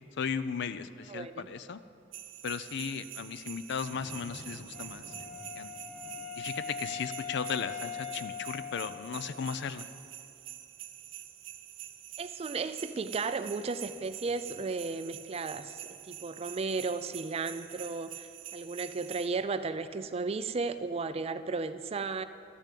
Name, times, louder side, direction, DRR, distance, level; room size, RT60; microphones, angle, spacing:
voice 1, 0.2-1.8 2.4-5.3 5.6-5.7 6.4-9.9, left 6 dB, 60° left, 13 dB, 0.5 m, -36 dB
voice 2, 1.1-1.5 12.2-22.2, right 4 dB, 30° right, 12 dB, 0.4 m, -34 dB
sound 1, 2.1-19.3, right 12 dB, 80° right, 0.6 m, -46 dB
sound 2, 3.9-9.4 9.9-10.0 13.9-15.0, left 1 dB, 80° left, 1.9 m, -55 dB
Wind instrument woodwind instrument, 4.7-9.5, left 7 dB, 45° left, 1.8 m, -41 dB
12.5 x 6.8 x 8.4 m, 2.6 s
head